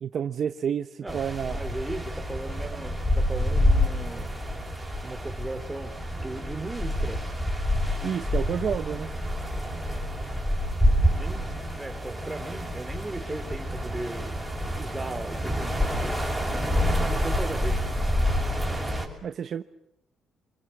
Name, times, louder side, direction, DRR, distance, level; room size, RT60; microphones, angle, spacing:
voice 1, 0.0-1.6 8.0-9.1 19.2-19.6, right 8 dB, 60° right, 10 dB, 0.9 m, -30 dB
sound 1, 1.1-19.1, equal, ahead, 6.3 m, -27 dB
voice 2, 1.5-4.3 5.0-5.9 6.2-7.2 11.1-11.5 11.8-14.5 14.8-16.2 17.0-17.9, right 2 dB, 15° right, 6 dB, 3.3 m, -37 dB
26.5 x 21.5 x 7.8 m, 0.78 s
cardioid pair, 90°, 0 cm